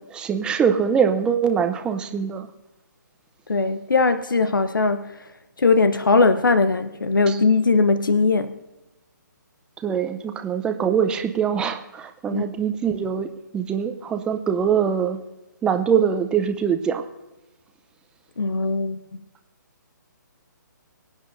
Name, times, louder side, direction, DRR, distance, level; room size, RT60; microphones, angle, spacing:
voice 1, 0.0-2.5 7.3-7.4 9.8-15.2 15.6-17.0, right 7 dB, 10° right, 6 dB, 0.6 m, -23 dB
voice 2, 3.5-5.1 5.6-8.6 12.3-12.5 18.4-19.0, left 3 dB, 90° left, 12 dB, 0.8 m, -20 dB
23.5 x 9.0 x 2.6 m, 1.0 s
hypercardioid pair, 150°, 11 cm